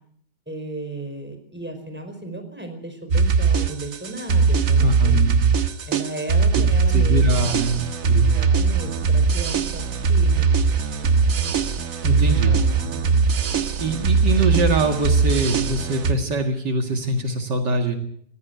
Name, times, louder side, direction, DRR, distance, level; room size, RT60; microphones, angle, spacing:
voice 1, 0.5-5.3 5.8-7.2 8.1-10.5 12.0-13.3, right 2 dB, 5° right, 7 dB, 4.7 m, -35 dB
sound 1, 3.1-16.1, right 5 dB, 50° right, 1.5 m, -20 dB
voice 2, 4.8-5.4 6.5-6.6 6.9-7.8 8.0-8.4 12.0-12.5 13.8-18.0, right 2 dB, 70° right, 5 dB, 2.5 m, -23 dB
20.0 x 16.5 x 8.3 m, 0.66 s
omnidirectional pair, 1.9 m